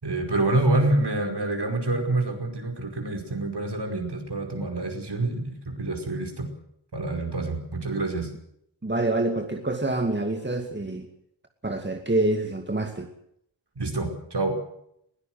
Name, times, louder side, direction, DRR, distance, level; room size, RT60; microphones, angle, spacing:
voice 1, 0.0-6.5 6.9-8.3 13.8-14.6, right 2 dB, 60° right, 4 dB, 5.3 m, -27 dB
voice 2, 8.8-11.1 11.6-13.1, right 2 dB, 25° right, 4 dB, 2.4 m, -26 dB
21.5 x 16.0 x 7.7 m, 0.72 s
cardioid pair, 60°, 47 cm